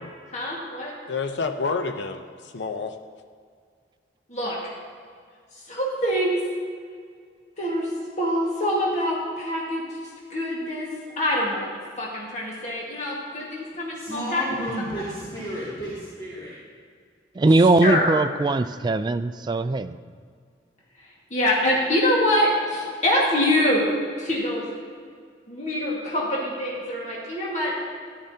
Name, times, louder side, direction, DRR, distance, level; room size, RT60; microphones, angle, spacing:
voice 1, 0.3-0.9 4.3-4.7 5.7-6.4 7.6-7.9 8.2-9.8 10.3-10.9 11.2-11.7 12.0-14.4 17.8-18.1 21.3-23.9 24.2-24.7 25.5-27.8, left 1 dB, 40° left, -4 dB, 1.7 m, -24 dB
voice 2, 1.1-3.0, left 4 dB, 75° left, 6 dB, 0.6 m, -29 dB
voice 3, 13.9-16.5, right 1 dB, 25° left, -11 dB, 2.4 m, -32 dB
voice 4, 17.3-20.0, right 2 dB, 25° right, 10 dB, 0.3 m, -20 dB
14.0 x 11.5 x 2.8 m, 2.1 s
head